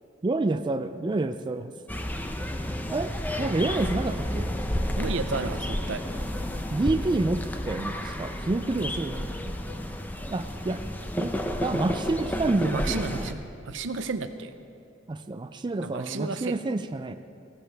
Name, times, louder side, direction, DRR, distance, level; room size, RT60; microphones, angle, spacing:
voice 1, 0.2-1.7 2.9-3.1 3.4-4.6 6.7-9.3 10.3-10.8 11.2-11.3 11.6-13.0 15.1-17.1, right 2 dB, 25° right, 8 dB, 0.4 m, -28 dB
sound 1, 1.9-13.3, left 1 dB, 10° left, 0.7 m, -31 dB
voice 2, 5.0-6.0 12.6-14.5 15.8-16.6, right 4 dB, 80° right, 10 dB, 0.7 m, -32 dB
18.5 x 15.5 x 3.4 m, 2.5 s
head